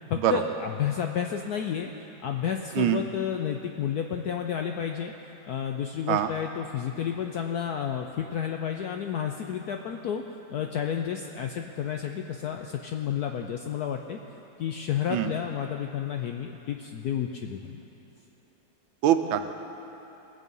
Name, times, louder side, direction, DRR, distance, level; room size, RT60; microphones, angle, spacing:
voice 1, 0.1-5.1 5.5-10.2 10.5-14.2 14.6-17.8, left 8 dB, 70° left, 4 dB, 0.9 m, -31 dB
voice 2, 19.0-19.4, right 11 dB, 85° right, 8 dB, 1.5 m, -23 dB
20.0 x 7.4 x 5.4 m, 3.0 s
omnidirectional pair, 2.1 m